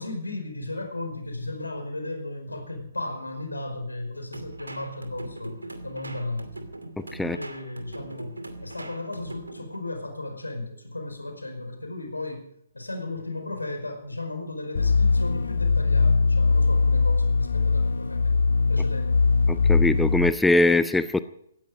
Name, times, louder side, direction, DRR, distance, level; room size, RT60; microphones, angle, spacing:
voice 1, 0.0-6.7 7.2-18.4 18.7-19.2, left 2 dB, 80° left, 5 dB, 4.9 m, -35 dB
sound 1, 4.3-9.8, right 2 dB, 75° right, 2.5 m, -41 dB
voice 2, 7.0-7.4 19.5-21.2, left 2 dB, 5° left, 13 dB, 0.6 m, -22 dB
sound 2, 14.7-20.3, left 4 dB, 65° left, 0.7 m, -21 dB
18.0 x 14.5 x 5.1 m, 0.72 s
figure-of-eight pair, 125°, 0 cm